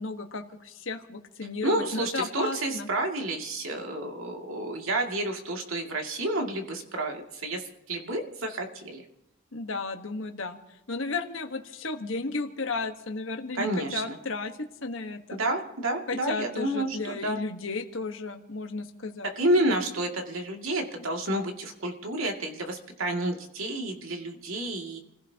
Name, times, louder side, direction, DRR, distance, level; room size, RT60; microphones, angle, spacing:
voice 1, 0.0-2.9 9.5-10.6 10.9-15.4 16.1-19.3, left 3 dB, 70° left, 5 dB, 1.3 m, -34 dB
voice 2, 1.6-7.6 7.9-9.0 13.6-14.2 15.4-17.4 19.4-25.0, right 1 dB, 80° right, 2 dB, 2.3 m, -30 dB
29.0 x 16.0 x 2.9 m, 0.85 s
head